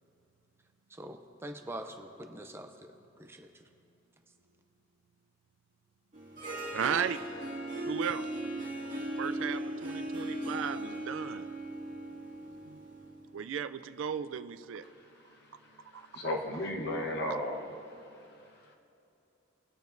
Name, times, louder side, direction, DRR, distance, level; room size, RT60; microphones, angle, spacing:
voice 1, 0.9-2.9 3.2-3.5, right 1 dB, 10° right, 6 dB, 0.5 m, -44 dB
Harp, 6.1-13.2, right 1 dB, 40° right, 1.9 m, -38 dB
voice 2, 6.7-7.3 7.9-8.3 9.2-11.5 12.7-12.8 13.3-14.8 15.9-16.1, right 7 dB, 75° right, 12 dB, 0.4 m, -35 dB
voice 3, 16.1-17.6, left 1 dB, 55° left, 0 dB, 1.1 m, -33 dB
21.0 x 7.0 x 2.6 m, 2.8 s
head